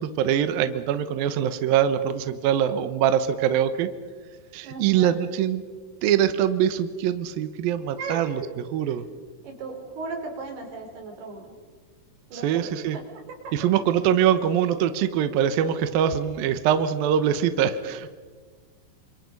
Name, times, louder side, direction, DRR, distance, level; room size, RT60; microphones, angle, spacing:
voice 1, 0.0-3.9 4.5-5.6 6.0-8.4 8.7-9.1 12.3-13.0 13.5-18.1, right 9 dB, 75° right, 10 dB, 2.2 m, -23 dB
voice 2, 4.6-5.1 7.9-8.5 9.4-11.5 12.3-13.0 13.4-13.5, right 4 dB, 55° right, 2 dB, 6.1 m, -36 dB
28.0 x 26.5 x 5.4 m, 1.5 s
omnidirectional pair, 5.5 m